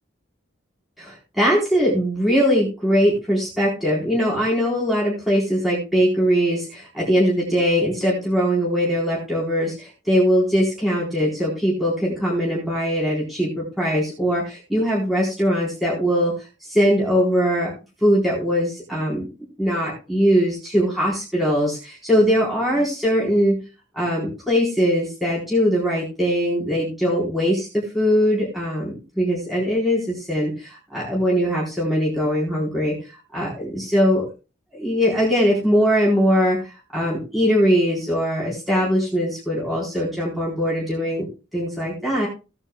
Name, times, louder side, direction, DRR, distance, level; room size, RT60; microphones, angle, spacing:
voice 1, 1.0-16.4 16.7-17.7 18.0-19.3 19.6-23.6 23.9-33.0 33.3-34.3 34.7-41.3 41.5-42.3, equal, ahead, -6 dB, 4.0 m, -21 dB
17.5 x 9.9 x 2.3 m, 0.30 s
head